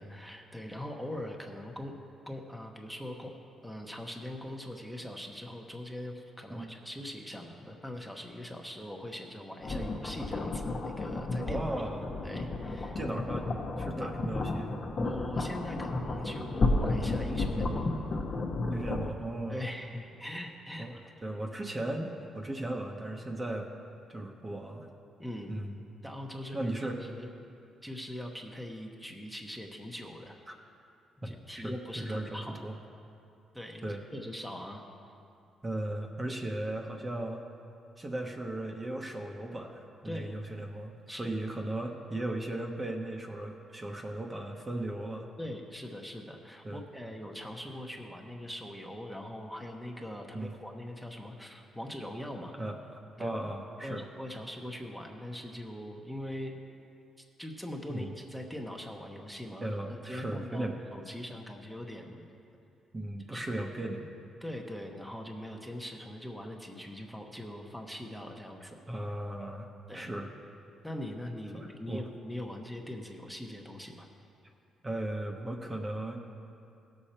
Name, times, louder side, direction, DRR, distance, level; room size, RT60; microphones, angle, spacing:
voice 1, 0.0-1.9 2.3-3.3 3.6-11.6 12.2-13.0 13.9-14.1 15.0-17.9 19.5-20.9 25.2-25.5 26.0-27.3 27.8-30.4 31.2-32.6 33.5-34.8 40.0-40.3 41.1-41.3 45.4-52.5 53.2-53.4 53.8-56.6 57.4-62.3 63.3-63.4 64.4-68.8 69.9-70.1 70.8-74.1, left 1 dB, ahead, 1 dB, 1.0 m, -41 dB
sound 1, 9.6-19.1, left 2 dB, 45° left, 1.1 m, -32 dB
voice 2, 11.4-12.0 12.9-13.5 13.8-14.7 18.7-19.6 20.8-23.7 24.1-24.9 25.5-25.8 26.5-27.0 30.5-30.6 31.2-32.8 33.8-34.0 35.6-37.4 38.0-45.3 46.6-46.8 50.3-50.6 52.5-52.8 53.2-54.1 57.9-58.1 59.6-60.8 62.9-64.0 68.9-69.7 69.9-70.3 71.5-72.1 74.8-76.2, right 1 dB, 25° right, 1 dB, 1.0 m, -36 dB
16.5 x 6.7 x 4.3 m, 2.6 s
cardioid pair, 90°, 0 cm